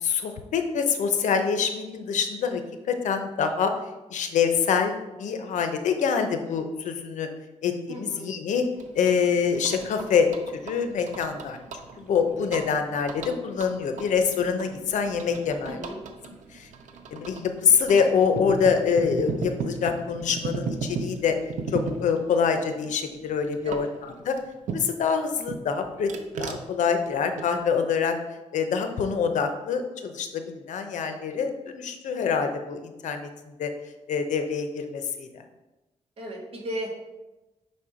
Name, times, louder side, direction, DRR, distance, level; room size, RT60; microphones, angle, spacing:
voice 1, 0.0-2.6 2.9-3.7 4.1-7.3 7.6-8.7 8.9-10.3 10.6-11.6 12.0-15.8 16.5-16.7 17.1-21.4 21.7-24.3 24.7-26.1 26.4-28.1 28.5-33.7 34.1-35.3, left 6 dB, 85° left, 6 dB, 0.7 m, -25 dB
voice 2, 7.9-8.2 15.7-16.0 23.6-24.0 36.2-36.9, equal, 50° right, -1 dB, 1.6 m, -35 dB
sound 1, 8.8-25.1 25.5-27.7, right 4 dB, 90° right, 0.7 m, -37 dB
5.6 x 4.3 x 4.9 m, 1.1 s
wide cardioid pair, 160°, 12 cm